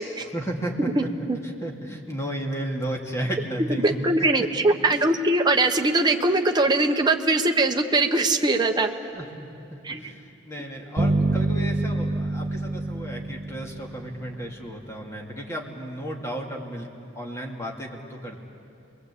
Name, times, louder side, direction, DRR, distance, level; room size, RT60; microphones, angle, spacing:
voice 1, 0.2-1.1 1.4-4.1 4.4-4.5 4.9-5.2 9.1-16.9 17.1-18.4, right 1 dB, 15° left, 0 dB, 2.5 m, -33 dB
voice 2, 1.0-1.4 3.8-8.9 9.8-10.1, right 2 dB, 25° right, 3 dB, 1.2 m, -22 dB
sound 1, 11.0-14.7, right 2 dB, 50° right, 1.6 m, -27 dB
29.0 x 22.0 x 8.5 m, 2.6 s
head